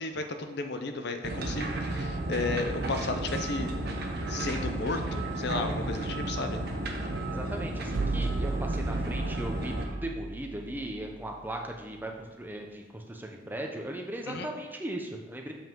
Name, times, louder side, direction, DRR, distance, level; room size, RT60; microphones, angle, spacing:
voice 1, 0.0-3.7 4.3-6.6 14.3-14.5, left 3 dB, 55° left, 7 dB, 0.6 m, -33 dB
sound 1, 1.2-9.9, right 1 dB, 55° right, 0.9 m, -33 dB
voice 2, 7.3-15.5, right 1 dB, 10° right, 2 dB, 0.6 m, -38 dB
sound 2, 7.9-11.8, right 3 dB, 85° right, 0.5 m, -35 dB
7.2 x 5.4 x 3.7 m, 1.2 s
head